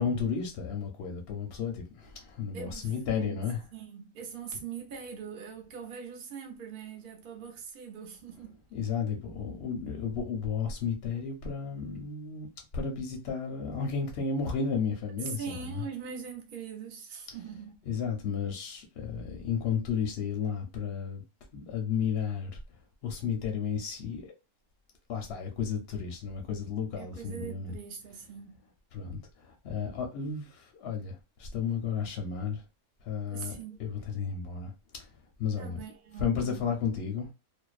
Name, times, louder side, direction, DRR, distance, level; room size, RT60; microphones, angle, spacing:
voice 1, 0.0-3.6 8.7-12.5 12.7-15.8 17.9-21.2 21.5-22.5 23.0-24.2 25.1-27.7 28.9-32.6 33.0-35.1 35.4-35.8 36.2-37.3, left 6 dB, 60° left, 0.7 m, -33 dB
voice 2, 2.5-3.4 3.7-8.6 15.2-17.8 27.0-28.7 33.3-33.9 35.6-36.7, right 7 dB, 55° right, 0.5 m, -42 dB
2.5 x 2.1 x 2.3 m
omnidirectional pair, 1.6 m